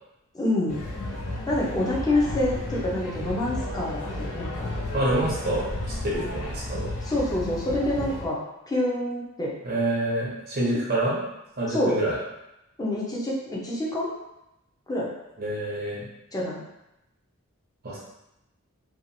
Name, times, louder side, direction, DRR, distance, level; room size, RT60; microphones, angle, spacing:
voice 1, 0.3-0.8 1.5-4.5 7.0-8.4 8.7-9.5 11.7-12.0 12.8-14.1 14.9-15.1 16.3-16.6, left 1 dB, 15° left, -5 dB, 0.6 m, -27 dB
sound 1, 0.7-8.2, left 1 dB, 75° left, 0.7 m, -33 dB
voice 2, 4.9-5.6 6.0-6.9 9.6-11.2 11.6-12.2 15.4-16.0 17.8-18.0, right 1 dB, 45° right, -5 dB, 0.8 m, -27 dB
2.8 x 2.4 x 2.7 m, 0.89 s
head